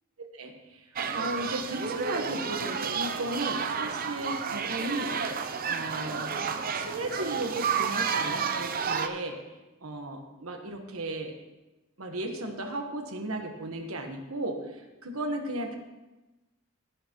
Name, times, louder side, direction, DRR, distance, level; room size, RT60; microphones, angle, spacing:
voice 1, 0.3-0.9 1.1-5.1 5.7-6.3 6.7-9.4 9.8-11.3 12.0-15.8, right 1 dB, 85° right, 4 dB, 1.3 m, -35 dB
sound 1, 1.0-9.1, right 6 dB, 45° right, 0.6 m, -31 dB
16.5 x 6.8 x 3.0 m, 1.1 s
head